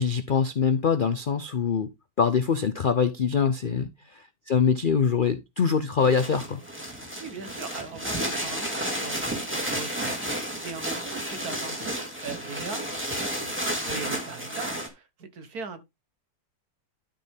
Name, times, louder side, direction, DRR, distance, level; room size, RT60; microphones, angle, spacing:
voice 1, 0.0-6.6, left 6 dB, 65° left, 0.5 m, -24 dB
sound 1, 6.0-14.9, right 1 dB, 5° right, 2.4 m, -32 dB
voice 2, 7.2-10.4 10.6-13.6 13.8-15.8, right 5 dB, 60° right, 1.8 m, -40 dB
12.5 x 5.1 x 3.6 m
omnidirectional pair, 1.8 m